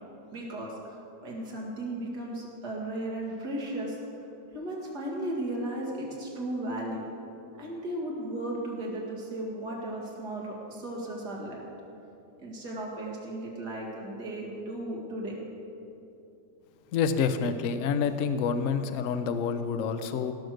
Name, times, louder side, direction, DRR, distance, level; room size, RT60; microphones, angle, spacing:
voice 1, 0.3-4.0 4.5-7.0 7.6-11.6 12.4-15.4, right 1 dB, 70° right, -3 dB, 2.7 m, -35 dB
voice 2, 16.9-20.3, left 6 dB, 65° left, 9 dB, 0.9 m, -28 dB
17.0 x 6.4 x 6.5 m, 2.7 s
omnidirectional pair, 1.8 m